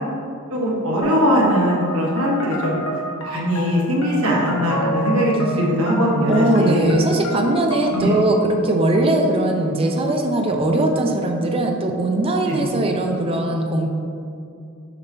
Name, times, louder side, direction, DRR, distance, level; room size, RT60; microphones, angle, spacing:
voice 1, 0.5-2.7 3.2-6.9 7.9-8.2 12.5-12.6, equal, 80° right, -3 dB, 1.4 m, -20 dB
sound 1, 1.0-8.2, equal, 70° left, 1.2 m, -30 dB
voice 2, 6.3-13.9, right 1 dB, 25° right, 2 dB, 0.5 m, -20 dB
6.8 x 2.9 x 5.3 m, 2.5 s
head